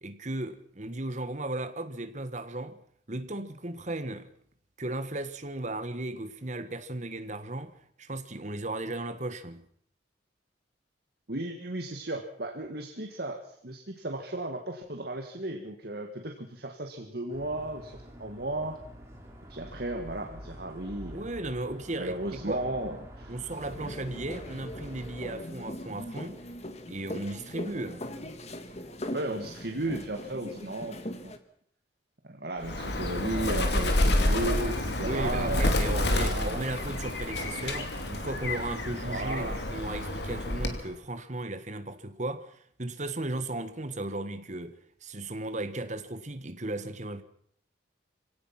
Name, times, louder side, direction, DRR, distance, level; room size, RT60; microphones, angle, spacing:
voice 1, 0.0-2.8 3.1-4.3 4.8-9.6 21.1-22.7 23.3-26.4 26.9-28.0 35.0-47.2, right 2 dB, 40° right, 1.5 m, -36 dB
voice 2, 11.3-18.8 19.5-21.2 22.0-23.4 29.1-31.3 32.2-36.7 39.0-39.6, right 2 dB, 55° right, 1.9 m, -35 dB
sound 1, 17.3-25.4, equal, 15° right, 4.0 m, -47 dB
sound 2, 23.5-31.4, left 1 dB, 35° left, 1.7 m, -40 dB
Bird, 32.6-40.9, left 1 dB, 60° left, 2.8 m, -29 dB
25.5 x 17.5 x 6.0 m
head